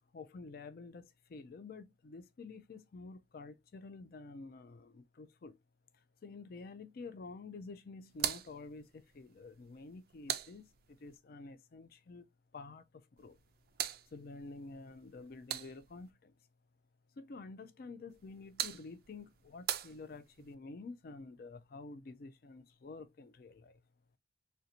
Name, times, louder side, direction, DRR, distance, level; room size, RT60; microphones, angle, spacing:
voice 1, 0.1-5.6 6.2-12.3 12.5-13.4 14.1-16.3 17.2-23.8, left 3 dB, 55° left, 0.4 m, -49 dB
sound 1, 8.1-11.2 13.2-16.1 18.1-20.5, right 11 dB, 55° right, 0.3 m, -43 dB
3.3 x 2.6 x 2.8 m
head